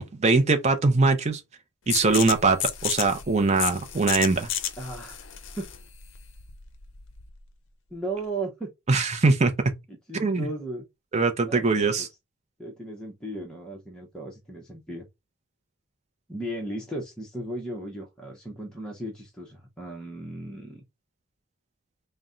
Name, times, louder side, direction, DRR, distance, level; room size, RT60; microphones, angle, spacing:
voice 1, 0.0-1.4 1.9-4.5 8.9-9.5 10.1-10.5 11.1-12.1, right 3 dB, 30° right, 0.5 m, -22 dB
sound 1, 1.9-7.4, left 10 dB, 60° left, 0.5 m, -32 dB
voice 2, 4.8-5.3 5.6-5.7 7.9-8.7 9.9-10.8 11.5-12.1 12.6-15.0 16.3-20.8, right 1 dB, 5° left, 0.7 m, -36 dB
4.0 x 2.1 x 3.7 m
head